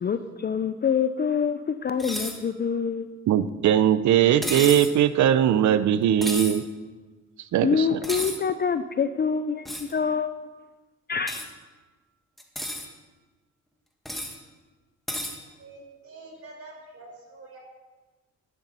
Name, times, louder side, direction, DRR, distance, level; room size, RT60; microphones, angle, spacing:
voice 1, 0.0-3.1 7.6-10.3 11.1-11.5, left 6 dB, 35° left, 11 dB, 0.5 m, -26 dB
sound 1, 2.0-2.4 4.4-4.9 6.2-6.6 8.0-8.4 9.7-9.9 11.3-11.5 12.4-12.9 14.1-14.4 15.1-15.4, equal, ahead, 1.8 m, -32 dB
voice 2, 3.3-6.6 7.5-8.0, right 10 dB, 70° right, 14 dB, 0.7 m, -20 dB
voice 3, 15.6-17.6, right 2 dB, 50° right, 0 dB, 5.2 m, -46 dB
11.5 x 11.0 x 5.5 m, 1.2 s
cardioid pair, 90°, 30 cm